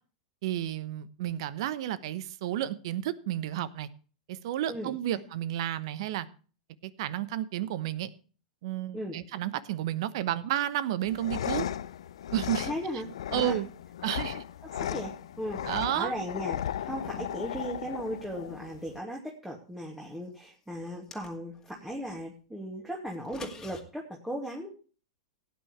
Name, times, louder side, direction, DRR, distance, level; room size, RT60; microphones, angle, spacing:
voice 1, 0.4-3.9 4.3-6.3 6.8-8.1 8.6-11.7 12.3-12.7 13.3-13.7 14.0-14.4 15.6-16.1, right 12 dB, 60° right, 1.0 m, -31 dB
sound 1, 11.0-19.0, left 10 dB, 70° left, 0.5 m, -36 dB
voice 2, 12.6-13.6 14.6-24.7, equal, 5° right, 2.4 m, -37 dB
sound 2, 20.8-21.7 23.1-23.8, left 4 dB, 20° left, 2.4 m, -45 dB
17.0 x 9.4 x 3.3 m
hypercardioid pair, 105°, 3 cm